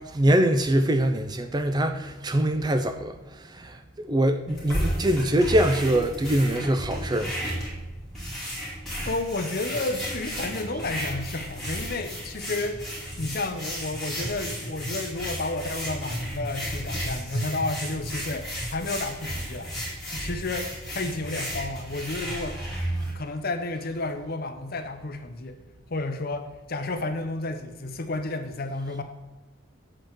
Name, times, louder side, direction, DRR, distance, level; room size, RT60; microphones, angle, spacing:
voice 1, 0.0-7.3, right 1 dB, 20° right, 0.4 m, -24 dB
sound 1, 4.5-23.1, equal, ahead, 2.3 m, -33 dB
voice 2, 9.1-12.8 13.2-19.7 20.1-22.6 23.1-25.6 25.9-29.0, left 2 dB, 45° left, 0.7 m, -31 dB
7.6 x 4.5 x 6.5 m
head